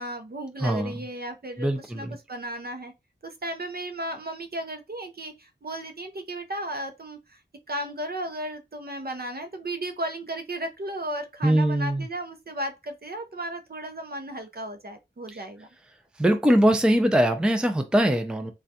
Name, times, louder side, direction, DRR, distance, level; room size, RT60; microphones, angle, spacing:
voice 1, 0.0-2.9 3.2-7.4 7.7-15.7, right 1 dB, 50° right, 0.6 m, -35 dB
voice 2, 0.6-0.9 1.6-2.1 11.4-12.1 15.3-15.4 16.2-18.5, equal, 5° right, 0.4 m, -22 dB
3.3 x 2.3 x 2.7 m
wide cardioid pair, 45°, 20 cm